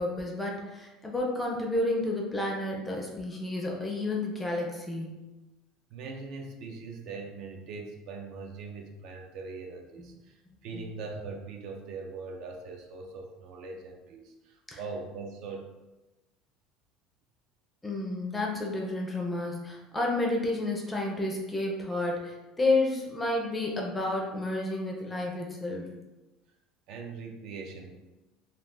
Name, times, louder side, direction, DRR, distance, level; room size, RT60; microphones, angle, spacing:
voice 1, 0.0-5.2 10.0-10.1 10.7-10.9 14.7-14.8 17.8-25.9, left 2 dB, 10° left, -1 dB, 0.4 m, -31 dB
voice 2, 5.9-15.7 26.9-28.0, right 4 dB, 55° right, 2 dB, 0.4 m, -41 dB
2.3 x 2.3 x 3.6 m, 1.1 s
cardioid pair, 160°, 0 cm